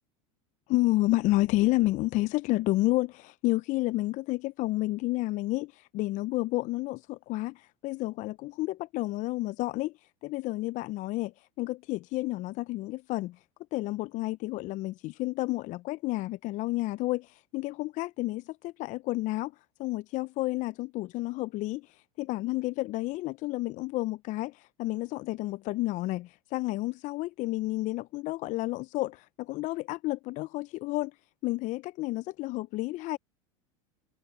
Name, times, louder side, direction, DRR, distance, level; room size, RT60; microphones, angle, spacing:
voice 1, 0.7-9.9 10.2-11.3 11.6-13.4 13.7-19.5 19.8-31.1 31.4-33.2, left 19 dB, 45° left, 0.6 m, -30 dB
hypercardioid pair, 90°, 17 cm